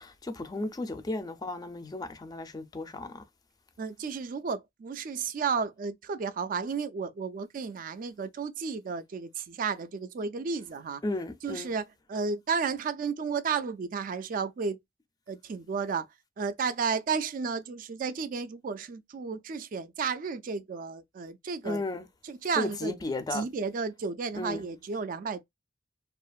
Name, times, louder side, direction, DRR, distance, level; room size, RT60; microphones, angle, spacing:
voice 1, 0.0-3.2 11.0-11.7 21.6-22.0 22.6-23.4 24.4-24.6, left 2 dB, 20° left, 0.4 m, -34 dB
voice 2, 3.8-11.0 11.4-14.8 15.3-16.1 16.4-21.8 22.2-23.0 23.3-25.4, right 5 dB, 50° right, 0.3 m, -32 dB
2.7 x 2.5 x 2.2 m
head